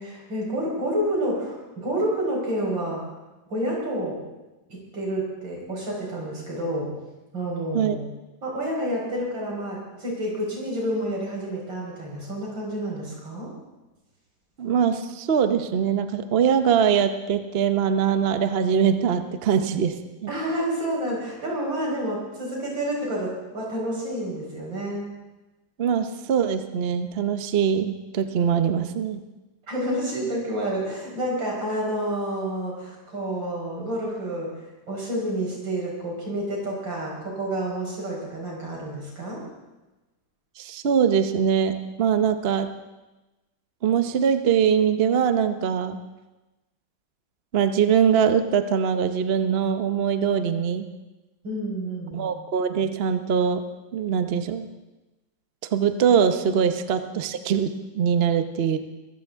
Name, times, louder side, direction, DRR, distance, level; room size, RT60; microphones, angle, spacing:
voice 1, 0.0-3.0 3.5-4.2 4.7-6.9 7.3-8.1 8.4-13.5 20.3-25.1 29.7-34.6 34.9-39.4 51.4-52.3, right 1 dB, 70° right, -3 dB, 5.5 m, -29 dB
voice 2, 14.6-19.9 20.2-20.3 25.8-29.2 40.6-42.7 43.8-46.0 47.5-50.9 52.1-53.6 53.9-54.7 55.7-58.8, right 7 dB, 50° right, 8 dB, 0.7 m, -22 dB
22.5 x 14.5 x 3.6 m, 1.1 s
omnidirectional pair, 2.1 m